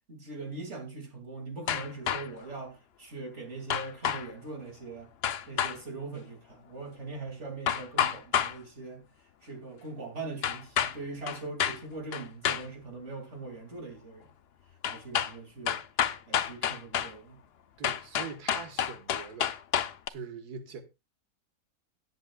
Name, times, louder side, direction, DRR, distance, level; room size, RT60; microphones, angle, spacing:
voice 1, 0.1-5.1 5.5-9.0 9.4-14.3 14.9-15.8 16.3-17.4, right 3 dB, 50° right, 2.8 m, -41 dB
sound 1, 1.7-2.4 3.7-4.3 5.2-5.8 7.7-8.6 10.4-11.0 11.3-11.8 12.1-12.7 14.8-15.3 15.7-17.1 17.8-20.1, left 9 dB, 55° left, 0.7 m, -29 dB
voice 2, 17.8-19.5 20.1-20.8, right 6 dB, 90° right, 1.8 m, -42 dB
18.0 x 7.9 x 2.3 m
omnidirectional pair, 1.6 m